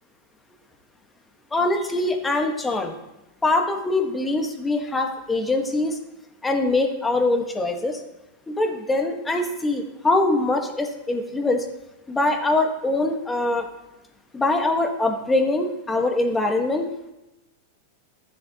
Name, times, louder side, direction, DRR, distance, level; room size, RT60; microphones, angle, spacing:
voice 1, 1.5-2.9 3.4-6.0 6.4-8.0 8.5-11.7 12.1-13.7 14.3-16.9, left 2 dB, 15° left, 4 dB, 1.3 m, -23 dB
14.0 x 7.2 x 2.9 m, 0.95 s
hypercardioid pair, 105°, 0 cm